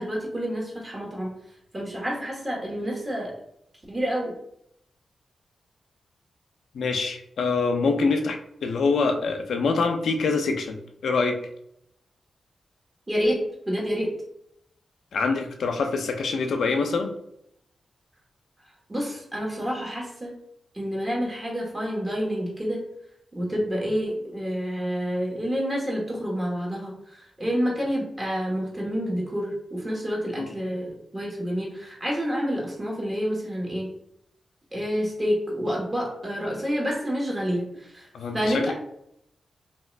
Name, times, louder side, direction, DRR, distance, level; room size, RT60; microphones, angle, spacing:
voice 1, 0.0-1.3 1.7-3.3 3.9-4.3 13.1-14.1 18.9-20.3 20.7-22.8 23.3-26.9 27.4-33.9 34.7-38.1 38.3-38.7, equal, 30° right, -2 dB, 1.4 m, -28 dB
voice 2, 6.7-11.4 15.1-17.1 30.4-30.5 38.1-38.7, left 4 dB, 80° left, 5 dB, 0.4 m, -25 dB
2.8 x 2.4 x 3.2 m, 0.74 s
cardioid pair, 50°, 0 cm